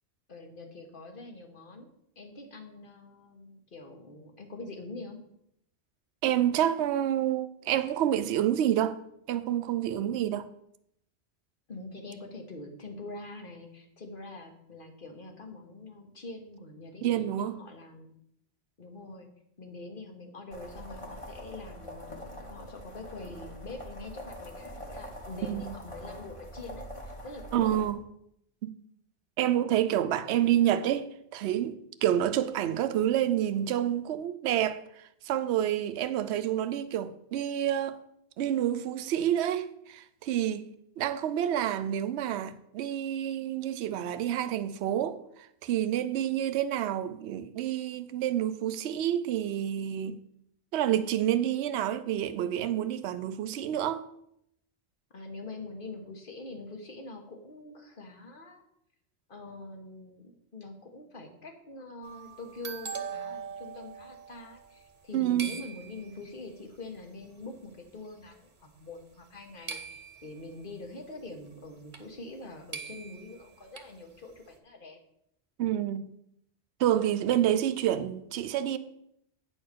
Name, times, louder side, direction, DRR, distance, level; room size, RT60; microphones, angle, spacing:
voice 1, 0.3-1.9 2.1-5.2 11.7-18.1 18.8-19.3 19.6-27.8 30.2-30.4 55.1-58.6 59.3-75.0, left 2 dB, 50° left, 1.5 m, -44 dB
voice 2, 6.2-9.0 9.3-10.5 17.0-17.6 25.5-25.7 27.5-28.0 28.6-28.7 29.4-38.0 38.4-40.7 41.0-50.2 50.7-54.1 65.1-65.5 75.6-76.0 76.8-78.8, right 11 dB, 75° right, 0.9 m, -28 dB
gravel road, 20.5-27.9, equal, 30° left, 1.5 m, -44 dB
sound 1, 62.0-65.1 65.4-66.3 67.2-67.3 67.8-68.2 69.7-70.5 71.9-72.0 72.3-72.4 72.7-73.9, right 6 dB, 45° right, 1.0 m, -41 dB
9.2 x 4.4 x 6.6 m
omnidirectional pair, 1.2 m